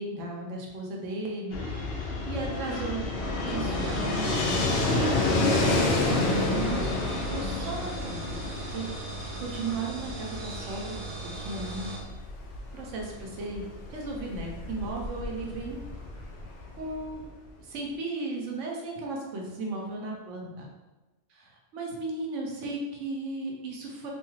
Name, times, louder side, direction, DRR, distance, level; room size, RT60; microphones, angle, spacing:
voice 1, 0.0-3.1 3.4-8.8 9.4-11.9 12.7-15.8 16.8-17.2 17.6-20.7 21.3-24.1, right 2 dB, 85° right, -1 dB, 1.0 m, -36 dB
Fixed-wing aircraft airplane, 1.5-17.2, left 2 dB, 65° left, 0.7 m, -29 dB
sound 1, 3.7-12.0, right 2 dB, 55° right, 0.6 m, -39 dB
2.7 x 2.3 x 3.0 m, 1.1 s
omnidirectional pair, 1.3 m